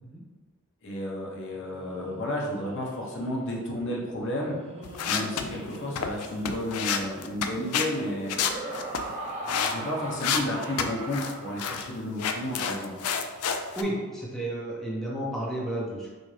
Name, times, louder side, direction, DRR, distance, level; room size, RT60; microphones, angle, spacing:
voice 1, 0.8-4.6 5.1-8.3 9.5-12.9, left 1 dB, 60° left, -3 dB, 0.9 m, -32 dB
Laughter, 1.5-12.0, right 2 dB, 30° right, 0.9 m, -41 dB
sound 1, 4.8-7.9 8.3-9.7 10.1-11.3 11.6-11.9 12.2-13.8, left 7 dB, 90° left, 0.4 m, -29 dB
voice 2, 13.8-16.1, right 1 dB, ahead, -6 dB, 0.7 m, -32 dB
6.2 x 2.6 x 3.3 m, 1.4 s
head